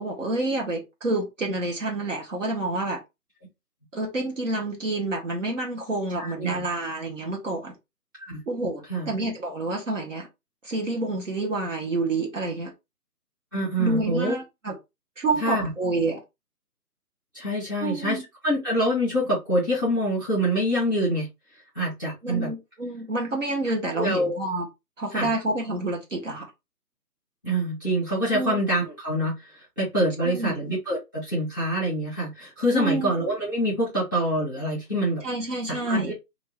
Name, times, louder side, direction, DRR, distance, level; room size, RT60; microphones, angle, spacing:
voice 1, 0.0-3.0 3.9-7.7 8.5-10.3 10.6-12.7 13.8-14.8 15.2-16.2 17.8-18.2 22.2-24.7 25.0-26.5 28.3-28.6 30.2-30.6 32.7-33.1 35.2-36.1, right 2 dB, 50° right, 0.9 m, -28 dB
voice 2, 6.2-6.6 8.2-8.4 8.9-9.1 13.5-14.3 15.4-15.7 17.3-18.2 18.4-21.3 21.7-22.5 23.9-24.4 25.1-25.3 27.4-35.2 35.7-36.1, equal, 15° right, 0.9 m, -25 dB
2.6 x 2.3 x 3.1 m
figure-of-eight pair, 160°, 48 cm